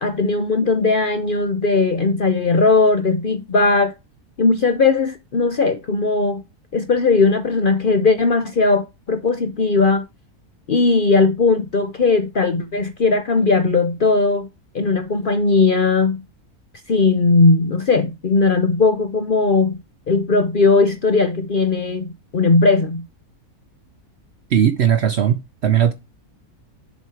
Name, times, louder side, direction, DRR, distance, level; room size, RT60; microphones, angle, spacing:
voice 1, 0.0-3.9 4.4-6.4 6.7-10.0 10.7-14.5 14.7-16.2 16.9-19.8 20.1-23.0, left 3 dB, 50° left, 0.7 m, -18 dB
voice 2, 24.5-25.9, right 9 dB, 60° right, 0.7 m, -18 dB
7.2 x 4.5 x 4.7 m
omnidirectional pair, 1.6 m